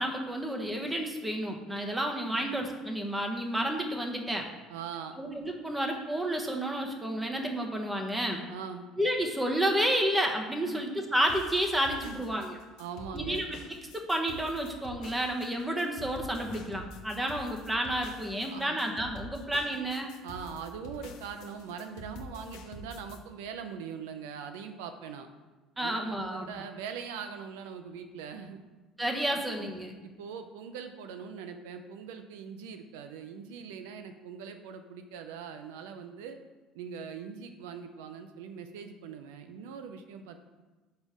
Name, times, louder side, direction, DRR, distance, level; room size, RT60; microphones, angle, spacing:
voice 1, 0.0-4.5 5.2-8.4 9.0-12.6 13.1-20.1 25.8-26.5 29.0-29.9, right 1 dB, 10° right, 2 dB, 1.2 m, -31 dB
voice 2, 4.7-5.2 8.5-8.9 10.6-10.8 12.0-12.2 12.8-13.4 15.7-15.8 18.5-18.7 20.2-25.3 25.8-28.6 29.6-29.7 30.2-36.4 36.7-40.4, right 6 dB, 90° right, 7 dB, 0.5 m, -42 dB
sound 1, 11.3-23.2, left 2 dB, 75° left, 0.8 m, -47 dB
5.2 x 4.4 x 6.0 m, 1.2 s
supercardioid pair, 95°, 0 cm